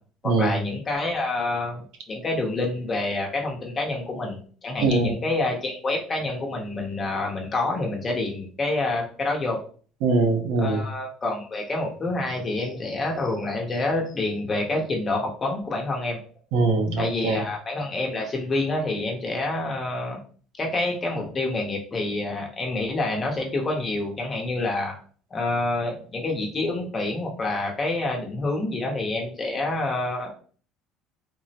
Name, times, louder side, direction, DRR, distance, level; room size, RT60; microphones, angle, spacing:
voice 1, 0.2-9.6 10.6-16.2 17.0-20.2 20.6-24.9 25.3-30.3, left 2 dB, 25° left, 0 dB, 0.7 m, -27 dB
voice 2, 4.8-5.2 10.0-10.8 16.5-17.4, right 3 dB, 85° right, 4 dB, 0.7 m, -22 dB
3.6 x 2.0 x 2.7 m, 0.43 s
cardioid pair, 150°, 0 cm